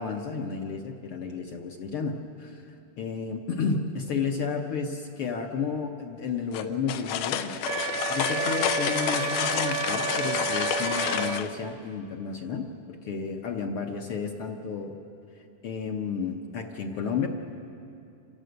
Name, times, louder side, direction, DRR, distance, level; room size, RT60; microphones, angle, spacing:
voice 1, 0.0-7.5 8.1-14.9 15.6-17.3, left 5 dB, 60° left, 3 dB, 1.5 m, -32 dB
sound 1, 6.5-11.5, left 9 dB, 85° left, 2.4 m, -29 dB
Wind instrument woodwind instrument, 7.6-11.4, right 10 dB, 70° right, 1.6 m, -31 dB
27.5 x 16.5 x 7.9 m, 2.6 s
omnidirectional pair, 3.6 m